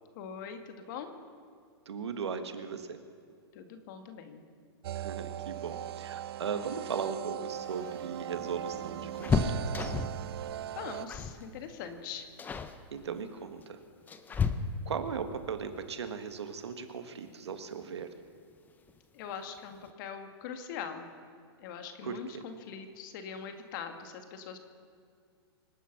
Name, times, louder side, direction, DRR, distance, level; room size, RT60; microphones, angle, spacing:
voice 1, 0.2-1.1 3.6-4.4 10.8-12.3 19.2-21.1 21.6-24.6, left 7 dB, 50° left, 6 dB, 2.0 m, -42 dB
voice 2, 1.9-3.0 4.9-9.9 12.9-13.8 14.8-18.1 22.0-22.4, right 6 dB, 90° right, 8 dB, 1.7 m, -38 dB
sound 1, 4.8-11.1, right 12 dB, 70° right, 0.4 m, -39 dB
sound 2, 7.6-10.3 11.1-11.4 11.7-12.0 12.4-12.8 13.6-15.1 16.8-16.9 17.3-17.4 18.6-19.0 19.3-19.4 19.7-19.9, left 5 dB, 15° left, 0.7 m, -33 dB
26.0 x 9.2 x 6.0 m, 2.2 s
hypercardioid pair, 140°, 14 cm